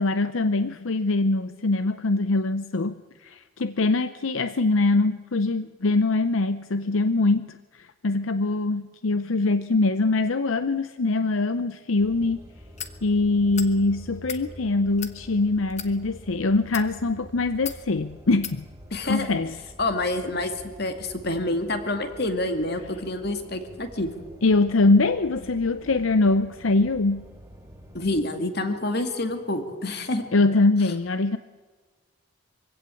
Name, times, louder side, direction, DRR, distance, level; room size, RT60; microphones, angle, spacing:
voice 1, 0.0-12.4 13.0-18.6 19.0-19.6 24.4-27.2 30.3-31.4, left 3 dB, 75° left, 12 dB, 0.7 m, -23 dB
sound 1, 12.0-28.2, equal, 10° right, 3.4 m, -46 dB
sound 2, 12.8-13.0 13.5-13.7 14.2-14.4 15.0-15.2 15.7-15.9 16.6-16.9 17.7-17.8 18.4-18.6, left 9 dB, 35° left, 1.2 m, -35 dB
voice 2, 18.9-19.3 19.8-20.5 20.8-24.1 27.9-30.3, left 2 dB, 50° left, 7 dB, 2.2 m, -27 dB
23.5 x 16.5 x 8.4 m, 1.5 s
head